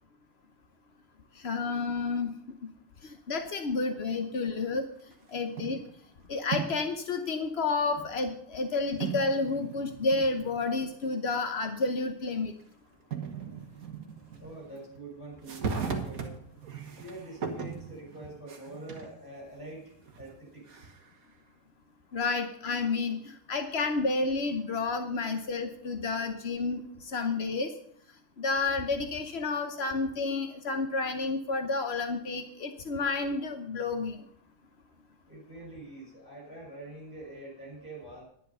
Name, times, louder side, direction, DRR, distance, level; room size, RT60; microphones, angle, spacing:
voice 1, 1.4-2.6 3.0-4.9 5.3-5.8 6.3-12.5 22.1-27.7 28.4-34.2, left 3 dB, 65° left, 6 dB, 0.6 m, -30 dB
sound 1, 5.1-5.9 6.4-7.0 7.7-7.8 9.0-11.0 11.3-11.4 12.6-12.7 13.1-15.0 15.4-19.2 19.7-21.2, right 6 dB, 45° right, 1.6 m, -38 dB
voice 2, 14.4-16.3 16.8-20.9 35.3-38.2, right 2 dB, 10° right, -2 dB, 6.1 m, -45 dB
10.5 x 10.5 x 5.5 m, 0.66 s
omnidirectional pair, 2.4 m